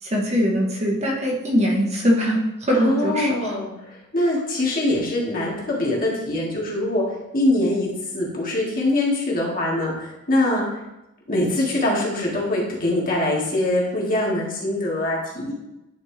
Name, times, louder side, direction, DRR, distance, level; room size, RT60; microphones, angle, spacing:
voice 1, 0.0-3.5, equal, 30° right, -1 dB, 1.2 m, -22 dB
voice 2, 2.7-10.8 11.3-15.5, left 1 dB, 40° left, -4 dB, 1.9 m, -23 dB
9.9 x 4.2 x 3.3 m, 0.93 s
head